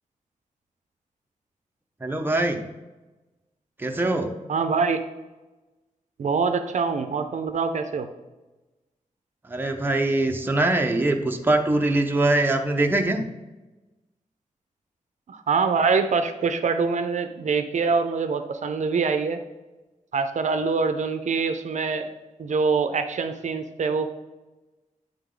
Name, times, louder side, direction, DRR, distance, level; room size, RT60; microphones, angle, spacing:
voice 1, 2.0-2.6 3.8-4.3 9.4-13.2, right 2 dB, 15° right, 4 dB, 0.6 m, -23 dB
voice 2, 4.5-5.0 6.2-8.1 15.3-19.4 20.1-22.1 22.4-24.1, right 5 dB, 60° right, 8 dB, 0.4 m, -24 dB
9.1 x 3.5 x 3.7 m, 1.1 s
wide cardioid pair, 145°, 14 cm